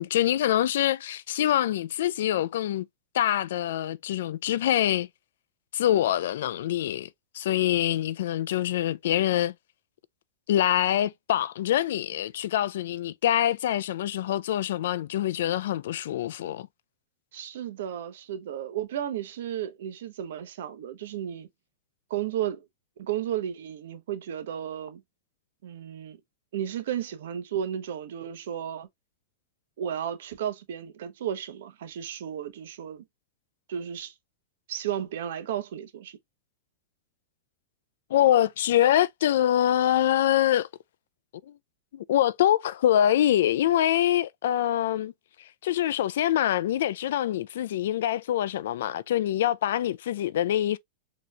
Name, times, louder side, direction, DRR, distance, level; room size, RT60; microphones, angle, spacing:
voice 1, 0.0-2.9 3.1-5.1 5.7-7.1 7.3-9.5 10.5-16.7 38.1-40.7 41.5-41.6 41.9-45.1 45.6-50.8, left 12 dB, 75° left, 0.4 m, -25 dB
voice 2, 17.3-21.5 22.1-22.6 23.0-25.0 25.6-26.2 26.5-28.9 29.8-33.0 33.7-34.1 34.7-36.2, right 10 dB, 70° right, 0.9 m, -33 dB
4.3 x 3.0 x 2.3 m
supercardioid pair, 145°, 0 cm